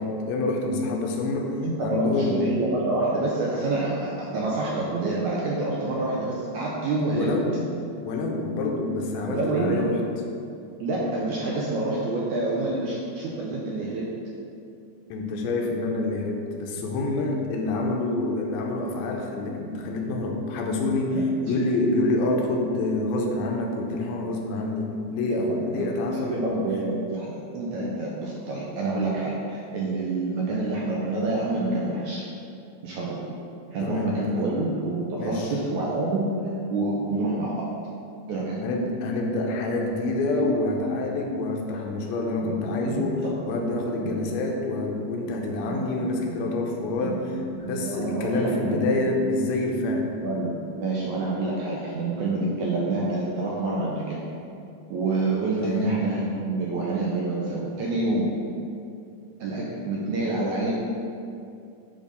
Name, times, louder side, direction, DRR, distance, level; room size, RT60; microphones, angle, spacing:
voice 1, 0.0-1.5 1.8-2.4 7.1-7.6 8.0-10.0 15.1-21.2 21.4-26.6 33.8-34.4 35.2-35.5 38.6-43.2 43.5-47.4 47.6-50.1 55.6-55.9, left 2 dB, 85° left, 1 dB, 2.6 m, -27 dB
voice 2, 1.6-7.3 9.3-9.9 10.8-14.1 21.1-21.4 25.2-25.9 26.3-32.3 32.8-33.3 33.7-36.3 36.7-37.7 38.3-38.6 42.4-42.6 42.8-43.4 44.0-44.1 45.7-46.5 47.0-47.2 47.6-48.8 50.2-54.2 54.9-58.3 59.4-60.7, right 2 dB, 80° right, -4 dB, 1.7 m, -27 dB
8.0 x 4.4 x 5.1 m, 2.5 s
omnidirectional pair, 4.3 m